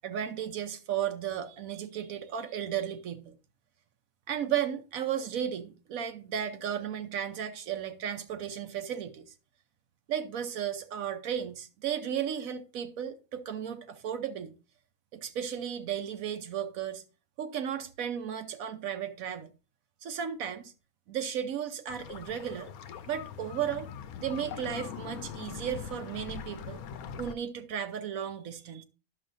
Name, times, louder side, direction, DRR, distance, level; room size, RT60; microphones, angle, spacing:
voice 1, 0.0-3.3 4.3-9.3 10.1-14.5 15.1-17.0 17.4-19.5 20.0-20.7 21.1-22.7 23.1-23.9 24.2-26.8 27.2-28.8, right 9 dB, 75° right, 1.1 m, -34 dB
sound 1, 21.9-27.3, left 8 dB, 80° left, 1.1 m, -42 dB
11.0 x 6.7 x 2.5 m
omnidirectional pair, 1.5 m